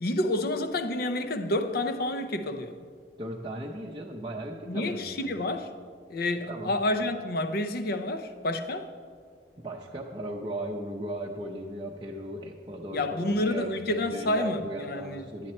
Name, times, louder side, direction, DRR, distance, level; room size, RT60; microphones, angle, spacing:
voice 1, 0.0-2.8 4.7-5.7 6.1-8.9 12.9-15.3, left 1 dB, 60° left, 0.6 m, -29 dB
voice 2, 3.2-5.3 6.5-6.7 9.6-15.5, right 1 dB, 30° right, 0.6 m, -37 dB
10.0 x 9.9 x 4.2 m
head